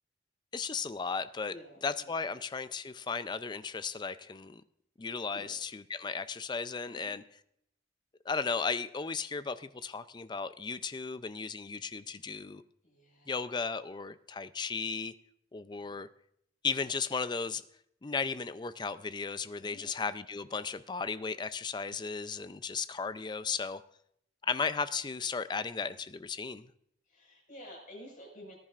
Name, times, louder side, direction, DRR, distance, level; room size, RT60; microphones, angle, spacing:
voice 1, 0.5-1.5 1.8-4.6 5.0-7.2 8.3-12.6 13.3-15.1 15.5-16.1 16.6-17.6 18.0-23.8 24.4-26.7, left 5 dB, 25° left, 13 dB, 0.4 m, -35 dB
voice 2, 1.5-2.1 5.3-5.6 6.9-7.2 12.8-13.4 19.6-19.9 27.1-28.6, equal, 50° left, 0 dB, 5.2 m, -51 dB
19.0 x 10.5 x 2.5 m, 0.73 s
head